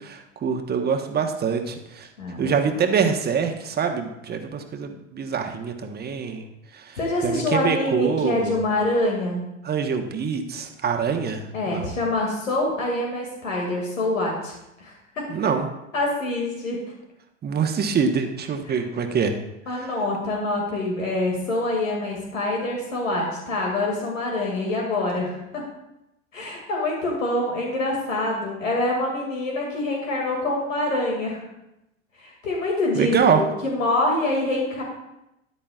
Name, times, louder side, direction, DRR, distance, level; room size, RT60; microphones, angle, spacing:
voice 1, 0.0-2.1 2.4-6.4 6.7-8.6 9.6-11.4 11.7-11.9 15.3-15.7 17.4-19.3 32.9-33.4, right 6 dB, 25° right, 5 dB, 1.2 m, -24 dB
voice 2, 2.2-2.5 7.0-9.4 11.5-15.3 15.9-16.8 18.7-18.8 19.7-25.6 26.3-31.4 32.2-34.8, left 2 dB, 85° left, -1 dB, 2.4 m, -25 dB
13.5 x 9.9 x 2.4 m, 0.88 s
hypercardioid pair, 90°, 38 cm